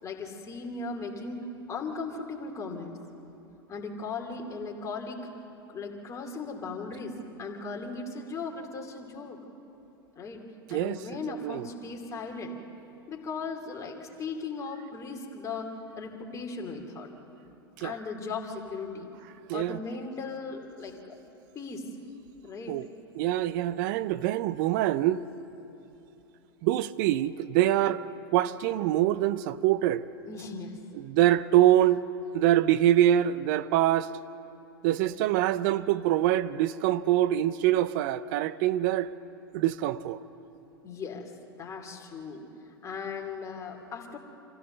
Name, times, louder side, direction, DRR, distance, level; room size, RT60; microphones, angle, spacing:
voice 1, 0.0-3.0 3.7-5.3 5.7-9.4 10.2-10.4 10.7-12.5 13.1-17.1 17.8-19.1 19.5-21.2 21.5-21.9 22.4-22.8 30.3-30.8 40.8-42.4 42.8-44.2, left 4 dB, 25° left, 2.6 m, -37 dB
voice 2, 11.3-11.7 17.8-17.9 19.5-19.8 22.7-22.9 23.1-25.2 26.6-28.0 28.3-30.0 30.9-32.0 32.3-34.1 34.8-39.1 39.5-40.2, right 13 dB, 50° right, 0.6 m, -24 dB
26.0 x 15.5 x 6.7 m
hypercardioid pair, 95°, 13 cm